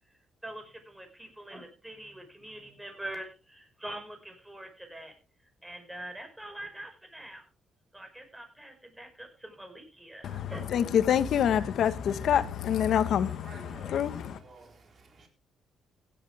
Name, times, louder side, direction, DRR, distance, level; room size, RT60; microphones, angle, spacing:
voice 1, 0.4-5.1 5.6-7.4 7.9-10.6, right 1 dB, 10° right, 5.4 m, -44 dB
voice 2, 10.2-14.4, left 9 dB, 70° left, 1.4 m, -27 dB
voice 3, 13.3-15.3, right 3 dB, 45° right, 4.1 m, -52 dB
16.0 x 11.5 x 3.5 m
cardioid pair, 90°, 0 cm